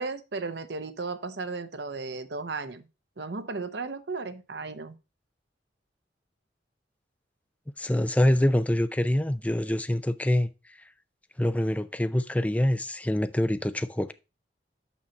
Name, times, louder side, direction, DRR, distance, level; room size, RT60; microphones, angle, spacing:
voice 1, 0.0-2.9 3.2-5.0, right 4 dB, 70° right, 0.9 m, -35 dB
voice 2, 7.8-10.5 11.4-14.1, left 1 dB, 10° left, 0.5 m, -25 dB
6.2 x 5.7 x 5.2 m
head